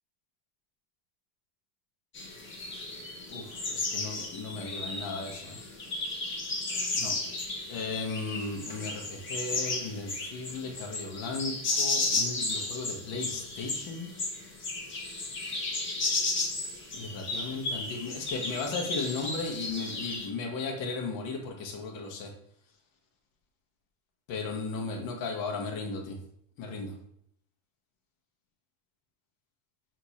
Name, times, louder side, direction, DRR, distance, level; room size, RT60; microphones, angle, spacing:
sound 1, 2.1-20.3, left 3 dB, 30° left, 1.3 m, -34 dB
voice 1, 3.3-5.6 6.9-7.1 7.7-14.1 16.9-22.3 24.3-26.2 26.6-26.9, left 3 dB, 55° left, 1 dB, 1.3 m, -36 dB
4.5 x 2.9 x 4.1 m, 0.71 s
supercardioid pair, 110°, 39 cm